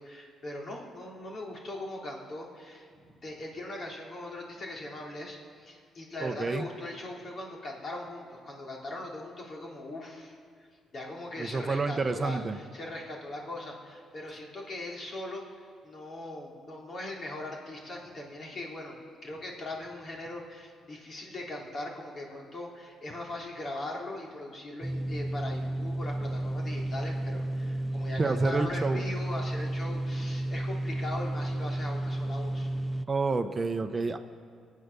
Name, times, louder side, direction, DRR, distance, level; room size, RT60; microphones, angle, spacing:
voice 1, 0.0-2.9 3.2-10.7 10.9-32.7, left 1 dB, 45° left, -1 dB, 3.3 m, -40 dB
voice 2, 6.2-6.7 11.4-12.6 28.2-29.0 33.1-34.2, right 3 dB, 30° right, 8 dB, 0.8 m, -29 dB
sound 1, 24.8-33.0, right 1 dB, 5° right, 0.4 m, -32 dB
23.0 x 8.5 x 6.8 m, 2.2 s
cardioid pair, 90°, 0 cm